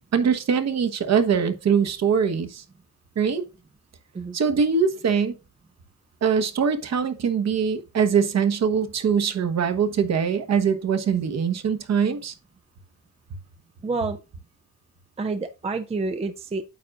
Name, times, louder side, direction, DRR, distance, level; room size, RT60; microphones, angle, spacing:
voice 1, 0.1-2.6 3.2-3.4 4.3-5.3 6.2-12.3, right 6 dB, 50° right, 1.1 m, -22 dB
voice 2, 13.8-14.2 15.2-16.6, right 3 dB, 20° right, 0.5 m, -28 dB
9.5 x 7.4 x 2.4 m
wide cardioid pair, 170°, 34 cm